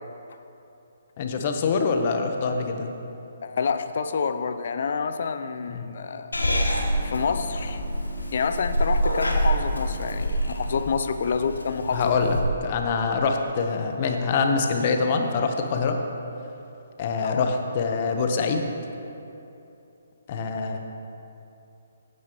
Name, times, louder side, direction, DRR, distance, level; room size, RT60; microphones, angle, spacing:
voice 1, 1.2-2.9 5.7-5.9 11.9-16.0 17.0-18.6 20.3-20.8, left 4 dB, 40° left, 4 dB, 1.1 m, -25 dB
voice 2, 3.4-6.3 7.0-7.8 8.3-12.2 17.2-17.4, left 5 dB, 55° left, 10 dB, 0.6 m, -28 dB
Purr / Meow, 6.3-12.4, equal, 85° left, 1.4 m, -27 dB
16.0 x 9.6 x 3.1 m, 2.8 s
figure-of-eight pair, 135°, 0 cm